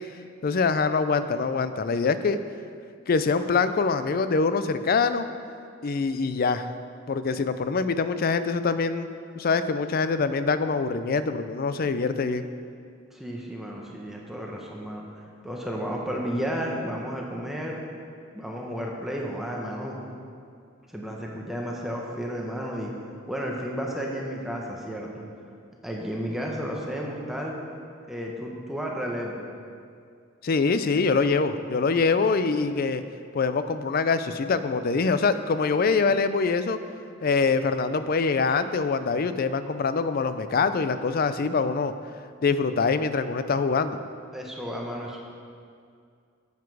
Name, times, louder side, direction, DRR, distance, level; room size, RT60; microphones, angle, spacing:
voice 1, 0.4-2.4 3.1-5.3 5.8-6.7 7.1-9.1 9.4-12.4 30.4-33.0 33.3-36.8 37.2-41.9 42.4-44.0, left 4 dB, 45° left, 11 dB, 0.4 m, -24 dB
voice 2, 13.1-15.0 15.4-17.8 18.3-20.0 20.9-22.9 23.3-25.3 25.8-27.6 28.1-29.4 44.3-45.2, equal, ahead, -2 dB, 0.9 m, -32 dB
9.3 x 8.2 x 4.7 m, 2.3 s
head